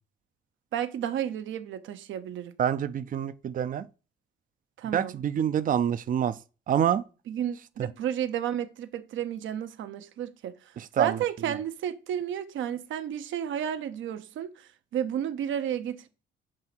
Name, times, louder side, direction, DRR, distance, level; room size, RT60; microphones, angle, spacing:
voice 1, 0.7-2.5 4.8-5.1 7.3-10.5 11.0-16.1, right 10 dB, 75° right, 0.8 m, -32 dB
voice 2, 2.6-3.9 4.9-6.4 6.7-7.0 7.8-7.9 10.8-11.6, right 9 dB, 45° right, 0.5 m, -27 dB
7.4 x 2.8 x 5.9 m
cardioid pair, 90°, 20 cm